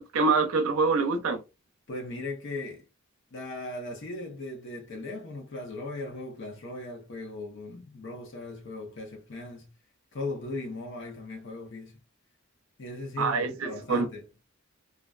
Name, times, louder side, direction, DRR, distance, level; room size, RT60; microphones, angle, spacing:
voice 1, 0.0-1.4 13.2-14.1, right 4 dB, 80° right, 0.5 m, -25 dB
voice 2, 1.9-2.8 3.3-9.7 10.1-12.0 12.8-14.2, left 2 dB, 60° left, 0.7 m, -38 dB
2.4 x 2.2 x 2.3 m
head